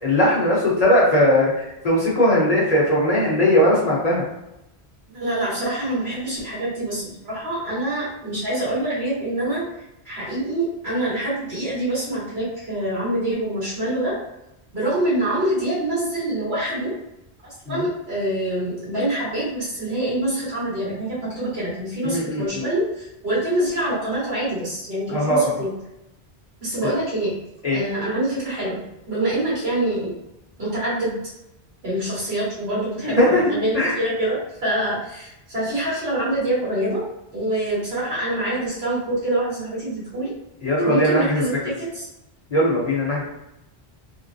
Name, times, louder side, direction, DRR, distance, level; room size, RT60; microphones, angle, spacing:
voice 1, 0.0-4.2 17.7-17.8 22.0-22.6 25.1-25.5 26.8-26.9 27.6-27.8 33.0-33.4 33.7-34.0 40.6-41.4 42.5-43.2, left 1 dB, 40° left, -5 dB, 1.0 m, -19 dB
voice 2, 5.1-9.6 10.0-14.2 14.7-16.9 17.6-25.7 26.6-27.4 27.7-28.8 29.1-30.1 30.6-31.2 31.8-37.0 37.3-40.3 40.8-41.5 41.8-42.1, right 1 dB, 75° right, -9 dB, 1.9 m, -25 dB
3.7 x 2.1 x 2.6 m, 0.87 s
omnidirectional pair, 1.1 m